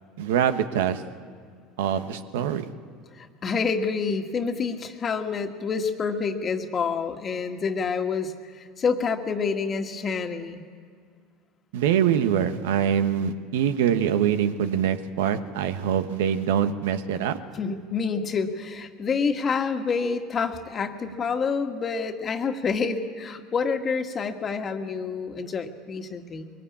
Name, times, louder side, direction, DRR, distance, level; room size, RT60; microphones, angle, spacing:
voice 1, 0.2-1.0 1.8-2.7 11.7-17.4, right 9 dB, 80° right, 10 dB, 1.2 m, -24 dB
voice 2, 3.1-10.6 17.6-26.5, left 5 dB, 35° left, 5 dB, 1.8 m, -28 dB
22.5 x 18.5 x 8.6 m, 2.1 s
hypercardioid pair, 90°, 0 cm